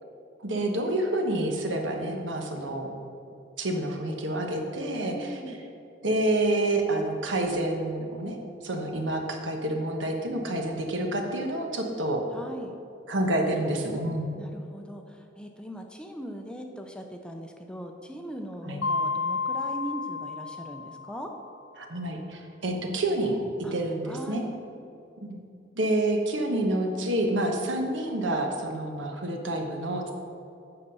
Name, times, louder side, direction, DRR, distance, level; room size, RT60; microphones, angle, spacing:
voice 1, 0.4-2.9 3.6-5.4 6.0-8.4 8.6-12.2 13.1-14.4 18.6-18.8 21.8-23.4 23.7-24.4 25.2-25.4 25.8-30.1, right 1 dB, 85° right, 3 dB, 1.1 m, -28 dB
voice 2, 5.0-5.6 12.3-12.7 14.4-21.3 23.6-23.7 24.1-24.5, equal, 5° left, 3 dB, 0.5 m, -40 dB
Mallet percussion, 18.8-21.4, left 4 dB, 85° left, 0.7 m, -31 dB
8.0 x 5.7 x 5.5 m, 2.6 s
head